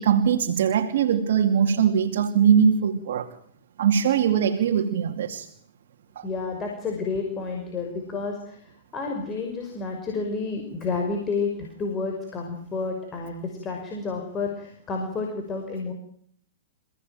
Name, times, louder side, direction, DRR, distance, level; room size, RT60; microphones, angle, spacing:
voice 1, 0.0-3.3 3.8-5.5 6.2-6.3, right 8 dB, 65° right, 4 dB, 2.6 m, -21 dB
voice 2, 6.2-15.9, left 4 dB, 20° left, 2 dB, 5.7 m, -30 dB
28.0 x 17.0 x 9.2 m, 0.64 s
hypercardioid pair, 130°, 0 cm